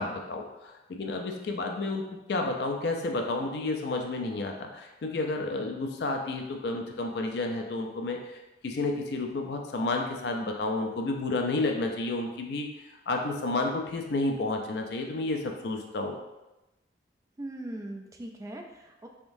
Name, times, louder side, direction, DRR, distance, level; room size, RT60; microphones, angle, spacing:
voice 1, 0.0-2.0 2.3-16.2, left 2 dB, 60° left, 2 dB, 0.4 m, -31 dB
voice 2, 17.4-19.1, right 1 dB, 20° right, 2 dB, 0.3 m, -40 dB
3.6 x 3.5 x 2.6 m, 1.0 s
head